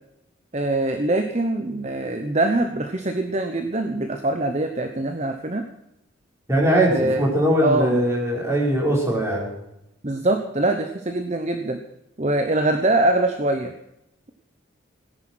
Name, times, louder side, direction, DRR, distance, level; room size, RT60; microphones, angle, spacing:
voice 1, 0.5-5.6 6.9-7.2 7.6-8.0 10.0-11.8 12.2-13.7, right 2 dB, 35° right, 7 dB, 1.0 m, -23 dB
voice 2, 6.5-9.5, right 1 dB, 15° right, -4 dB, 5.2 m, -21 dB
18.0 x 10.5 x 6.3 m, 0.84 s
head